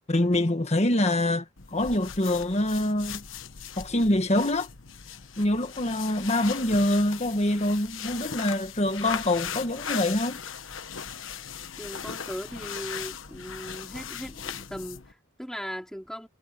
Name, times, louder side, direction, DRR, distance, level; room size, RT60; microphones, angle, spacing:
voice 1, 0.1-3.2 3.8-4.7 5.4-10.4, left 1 dB, 30° left, 1.4 m, -25 dB
sound 1, 1.6-15.1, left 7 dB, 70° left, 1.3 m, -38 dB
voice 2, 11.8-16.3, equal, 5° left, 4.1 m, -38 dB
head